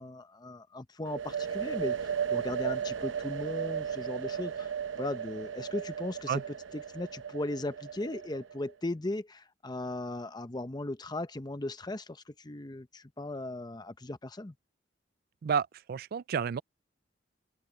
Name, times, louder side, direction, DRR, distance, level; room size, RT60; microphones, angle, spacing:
voice 1, 0.0-4.7 5.0-6.4 6.7-14.5, left 2 dB, 20° left, 0.8 m, -37 dB
sound 1, 1.0-8.7, right 8 dB, 85° right, 1.0 m, -35 dB
voice 2, 15.4-16.6, right 7 dB, 50° right, 0.3 m, -30 dB
open air
head